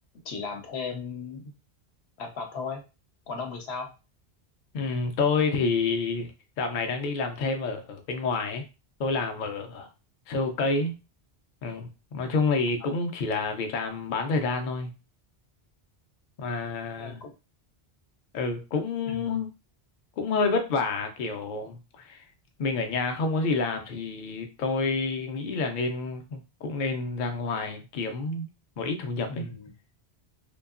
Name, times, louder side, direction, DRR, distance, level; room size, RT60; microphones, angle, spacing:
voice 1, 0.2-1.5 2.2-2.8 3.3-3.9 12.8-12.9 17.0-17.3 19.1-19.4 29.3-29.7, left 4 dB, 80° left, 0.9 m, -36 dB
voice 2, 4.7-6.3 6.6-8.7 9.0-9.9 10.3-10.9 11.6-14.9 16.4-17.2 18.3-19.5 20.2-22.2 22.6-28.5 28.8-29.5, left 4 dB, 60° left, 0.6 m, -28 dB
2.7 x 2.2 x 2.4 m
omnidirectional pair, 1.1 m